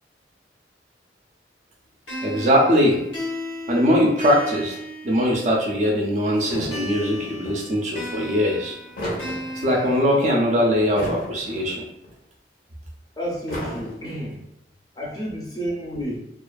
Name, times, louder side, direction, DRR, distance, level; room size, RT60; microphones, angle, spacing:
sound 1, 2.1-5.7 6.7-10.7, left 1 dB, 80° left, 0.9 m, -35 dB
voice 1, 2.2-3.0 3.7-4.8 5.0-8.8 9.6-11.8, equal, 40° right, -1 dB, 0.4 m, -21 dB
sound 2, 6.4-7.6 8.6-10.0 10.7-11.8 12.0-12.1 13.3-14.3, equal, 55° left, 0.7 m, -33 dB
voice 2, 13.2-14.4 15.0-16.3, equal, 20° left, -4 dB, 0.5 m, -30 dB
2.4 x 2.4 x 2.2 m, 0.80 s
head